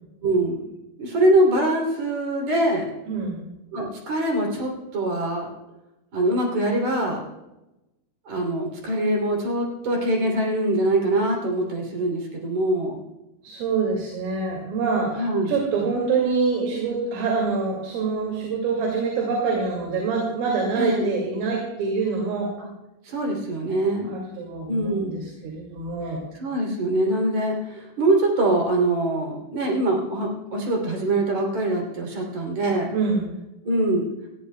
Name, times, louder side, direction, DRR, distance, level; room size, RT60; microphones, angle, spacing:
voice 1, 0.2-0.7 1.0-2.9 3.7-5.5 6.1-7.2 8.3-13.0 15.2-15.5 20.8-21.1 22.6-22.7 23.0-24.1 24.7-25.2 26.4-32.9 33.6-34.1, right 1 dB, 40° right, -1 dB, 3.4 m, -23 dB
voice 2, 3.1-3.4 13.4-15.2 15.5-22.5 24.0-26.2 32.9-33.3, right 4 dB, 80° right, 0 dB, 4.8 m, -25 dB
20.0 x 14.5 x 2.2 m, 0.96 s
omnidirectional pair, 5.8 m